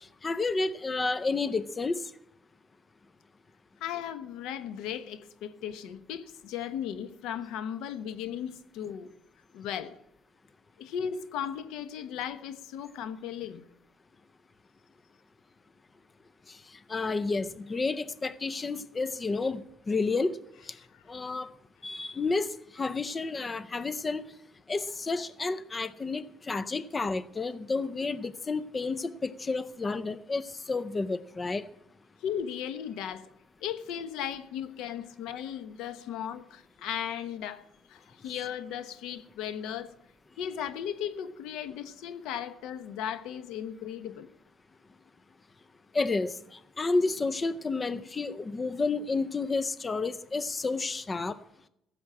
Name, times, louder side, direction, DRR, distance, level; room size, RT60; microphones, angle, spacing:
voice 1, 0.2-2.0 16.5-20.4 20.7-20.8 21.1-21.5 21.8-24.3 24.7-31.7 45.9-51.4, left 3 dB, 25° left, 0.5 m, -31 dB
voice 2, 3.8-9.1 9.5-10.0 10.8-13.6 20.9-21.0 32.2-33.3 33.6-40.0 40.4-44.3, left 9 dB, 80° left, 1.1 m, -36 dB
15.5 x 7.2 x 8.6 m
cardioid pair, 120°, 0 cm